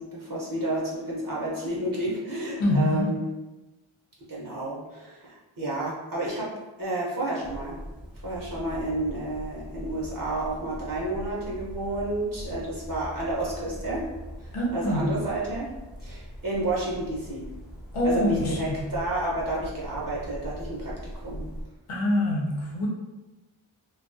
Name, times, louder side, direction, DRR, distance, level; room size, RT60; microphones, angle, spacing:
voice 1, 0.0-3.2 4.3-6.5 6.8-7.8 8.2-14.0 14.4-15.7 16.0-17.5 18.0-21.4, right 1 dB, 45° right, -5 dB, 0.6 m, -31 dB
voice 2, 2.6-3.1 14.5-15.2 17.9-18.9 21.9-22.9, left 1 dB, 80° left, -4 dB, 0.7 m, -25 dB
sound 1, 7.4-21.7, equal, ahead, 0.6 m, -41 dB
2.3 x 2.1 x 2.5 m, 1.1 s
wide cardioid pair, 60°, 50 cm